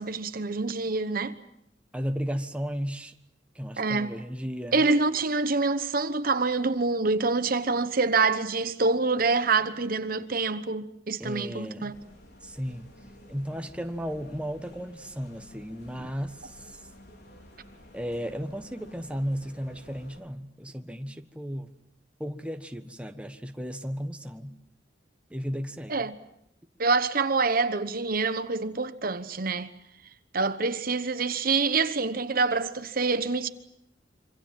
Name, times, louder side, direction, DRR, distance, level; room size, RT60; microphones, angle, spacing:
voice 1, 0.0-1.3 3.8-4.1 4.7-11.9 25.9-26.2 26.8-29.7 30.3-33.5, right 4 dB, 50° right, 1.1 m, -26 dB
voice 2, 1.9-3.1 3.5-4.8 11.2-12.0 12.4-12.9 13.3-16.8 17.9-21.8 22.2-24.6 25.3-26.1, equal, 5° right, 1.3 m, -34 dB
sound 1, 11.9-20.2, left 1 dB, 60° left, 5.0 m, -52 dB
27.0 x 25.5 x 7.6 m
head